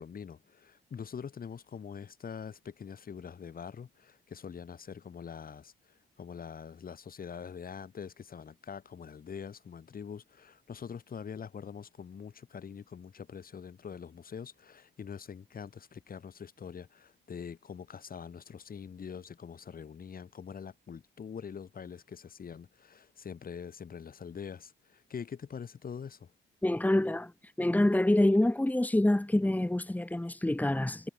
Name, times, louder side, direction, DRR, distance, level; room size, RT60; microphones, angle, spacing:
voice 1, 0.0-26.3, left 7 dB, 45° left, 4.8 m, -44 dB
voice 2, 26.6-27.3 27.6-31.1, left 1 dB, 10° left, 2.6 m, -26 dB
cardioid pair, 90°, 20 cm